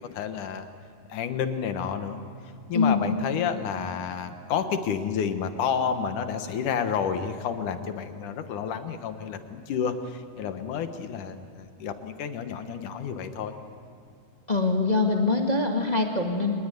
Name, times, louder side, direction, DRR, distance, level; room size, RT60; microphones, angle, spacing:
voice 1, 0.1-0.7 1.1-2.2 2.7-13.5, left 7 dB, 70° left, 8 dB, 2.7 m, -30 dB
voice 2, 2.7-3.1 14.5-16.5, left 3 dB, 20° left, 1 dB, 1.0 m, -23 dB
27.0 x 20.0 x 9.3 m, 2.5 s
omnidirectional pair, 4.0 m